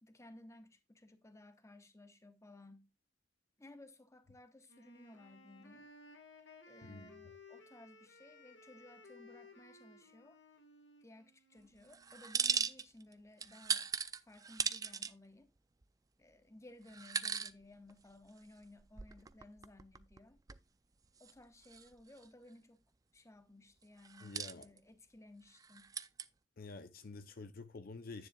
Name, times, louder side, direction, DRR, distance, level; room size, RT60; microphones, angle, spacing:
voice 1, 0.0-2.9 3.6-5.9 6.7-10.4 11.0-13.9 14.3-15.5 16.2-20.4 21.2-22.9 23.1-25.9, left 1 dB, 15° left, 1.0 m, -58 dB
Wind instrument woodwind instrument, 4.6-12.5, left 3 dB, 70° left, 1.6 m, -59 dB
voice 2, 6.8-7.1 24.2-24.7 26.6-28.3, left 3 dB, 55° left, 0.6 m, -49 dB
sound 1, 11.9-13.1 13.4-15.1 15.8-15.9 16.9-17.5 17.9-18.0 18.6-20.2 20.5-20.6 21.2-21.3 21.6-22.2 24.0-24.8 25.6-26.2, right 6 dB, 20° right, 0.4 m, -38 dB
10.5 x 9.3 x 2.3 m
head